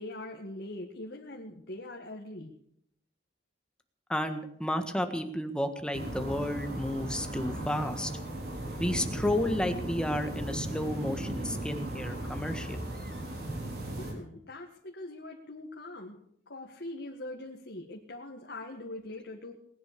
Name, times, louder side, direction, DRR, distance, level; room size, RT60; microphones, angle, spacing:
voice 1, 0.0-2.5 14.0-16.2 16.5-19.5, left 1 dB, 60° left, 1 dB, 1.9 m, -42 dB
voice 2, 4.1-8.1 8.8-12.8, left 1 dB, 5° left, 7 dB, 1.5 m, -32 dB
sound 1, 5.9-14.1, right 1 dB, 55° right, 4.3 m, -37 dB
19.5 x 10.5 x 6.9 m, 0.70 s
head